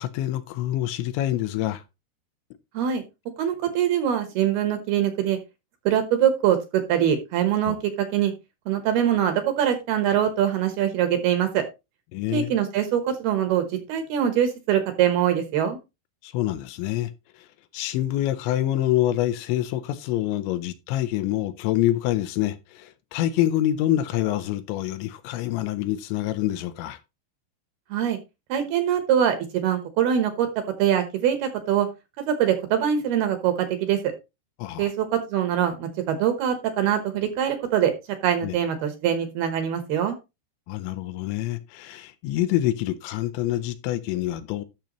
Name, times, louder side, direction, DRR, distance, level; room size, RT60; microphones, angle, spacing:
voice 1, 0.0-1.8 7.7-7.8 12.1-12.5 16.2-17.5 17.7-27.0 34.6-34.9 38.4-38.6 40.7-44.6, left 13 dB, 80° left, 2.9 m, -26 dB
voice 2, 3.4-5.4 5.9-8.3 8.7-11.6 12.3-15.8 27.9-28.2 28.5-30.5 30.8-31.9 32.3-34.1 34.8-37.9 38.2-40.2, right 9 dB, 70° right, 2.6 m, -23 dB
12.0 x 6.8 x 3.0 m
omnidirectional pair, 5.4 m